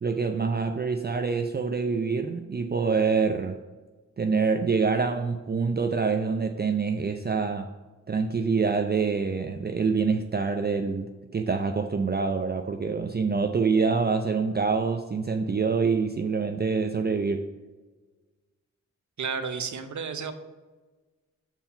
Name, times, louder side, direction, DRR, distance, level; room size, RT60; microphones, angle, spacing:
voice 1, 0.0-3.6 4.2-7.7 8.1-17.5, right 5 dB, 30° right, 5 dB, 0.5 m, -26 dB
voice 2, 19.2-20.3, right 5 dB, 65° right, 9 dB, 0.8 m, -32 dB
5.6 x 4.5 x 5.7 m, 1.3 s
cardioid pair, 60°, 31 cm